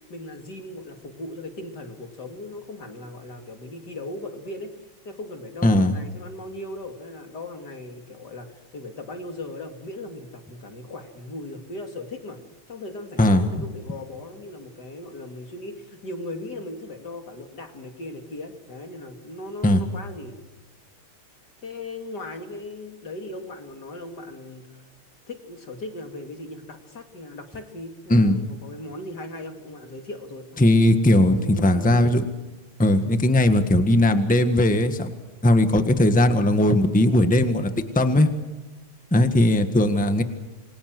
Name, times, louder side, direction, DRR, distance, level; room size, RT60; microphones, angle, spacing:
voice 1, 0.1-4.7 5.0-12.4 12.7-20.4 21.6-24.8 25.3-30.6 31.3-32.1, left 2 dB, 50° left, 5 dB, 3.1 m, -38 dB
voice 2, 5.6-5.9 13.2-13.4 19.6-19.8 28.1-28.4 30.6-32.2 32.8-35.1 35.4-37.7 37.9-38.3 39.1-40.2, left 1 dB, 5° left, 8 dB, 1.4 m, -18 dB
29.0 x 23.0 x 6.2 m, 1.1 s
omnidirectional pair, 2.4 m